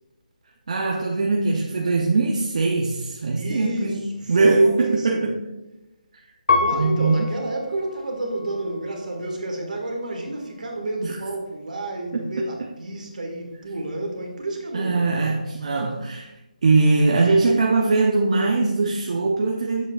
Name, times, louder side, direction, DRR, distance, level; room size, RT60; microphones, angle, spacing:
voice 1, 0.7-5.4 6.7-7.3 11.0-11.2 12.1-12.2 14.7-16.3 16.6-19.9, right 3 dB, 50° right, 1 dB, 0.6 m, -21 dB
voice 2, 3.3-5.3 6.5-15.1, right 1 dB, 70° right, 1 dB, 1.6 m, -30 dB
Piano, 6.5-9.2 9.9-10.6, left 4 dB, 75° left, 1.1 m, -28 dB
7.2 x 6.3 x 2.3 m, 0.98 s
hypercardioid pair, 170°, 5 cm